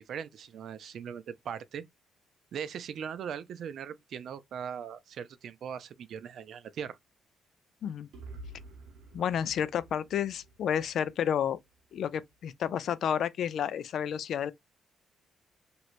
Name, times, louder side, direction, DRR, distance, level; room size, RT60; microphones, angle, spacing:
voice 1, 0.0-1.8 2.5-7.0, right 8 dB, 65° right, 0.4 m, -39 dB
sound 1, 8.1-12.0, right 2 dB, 90° right, 0.9 m, -50 dB
voice 2, 9.1-11.6 11.9-14.5, left 9 dB, 65° left, 0.4 m, -30 dB
3.1 x 2.9 x 2.5 m
cardioid pair, 90°, 0 cm